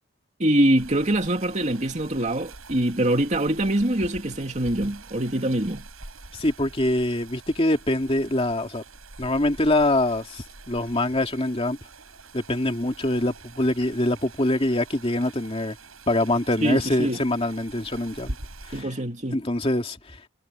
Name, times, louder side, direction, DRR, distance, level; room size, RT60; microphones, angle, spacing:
voice 1, 0.4-5.8 16.6-17.2 18.7-19.4, right 1 dB, 35° right, 2.7 m, -24 dB
sound 1, 0.8-18.8, right 2 dB, 80° right, 7.7 m, -44 dB
voice 2, 6.3-8.8 9.2-11.8 12.3-15.8 16.1-18.4 18.7-18.9 19.3-20.2, left 1 dB, 25° left, 2.5 m, -24 dB
head